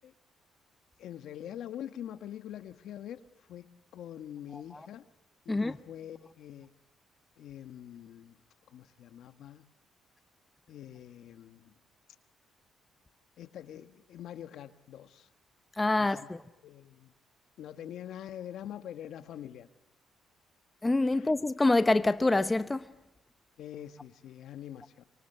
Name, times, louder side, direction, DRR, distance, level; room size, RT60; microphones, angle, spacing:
voice 1, 1.0-3.7 3.9-5.0 5.4-6.7 7.4-8.4 8.7-9.6 10.7-11.7 13.4-15.3 16.0-16.1 16.6-17.1 17.6-19.7 21.1-21.3 23.6-25.0, left 10 dB, 75° left, 1.4 m, -44 dB
voice 2, 15.8-16.4 20.8-22.9, left 2 dB, 15° left, 0.8 m, -26 dB
25.0 x 23.0 x 8.2 m
cardioid pair, 90°, 0 cm